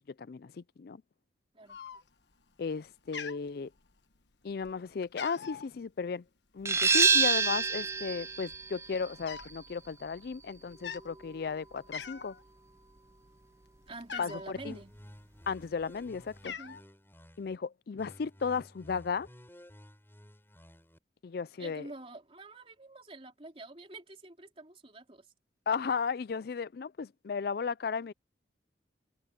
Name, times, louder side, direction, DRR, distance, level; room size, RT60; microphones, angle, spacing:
voice 1, 0.2-1.0 2.6-3.7 4.4-6.2 6.5-12.3 14.2-14.8 15.5-16.5 17.4-19.3 21.2-21.9 25.7-28.1, left 5 dB, 55° left, 0.4 m, -35 dB
Cat, 1.7-2.3 2.7-2.9 3.1-4.2 4.6-4.8 5.0-5.7 6.9-7.3 8.1-8.2 8.4-9.6 9.9-10.1 10.7-11.1 11.5-11.6 11.9-12.4 12.8-14.5 15.3-15.9 16.2-16.8, left 6 dB, 75° left, 1.4 m, -43 dB
sound 1, 6.7-12.1, right 5 dB, 15° right, 0.5 m, -29 dB
voice 2, 13.9-14.9 16.4-16.8 21.6-25.3, right 2 dB, 30° right, 3.4 m, -47 dB
sound 2, 14.6-17.6 18.0-21.0, equal, 10° left, 6.7 m, -54 dB
head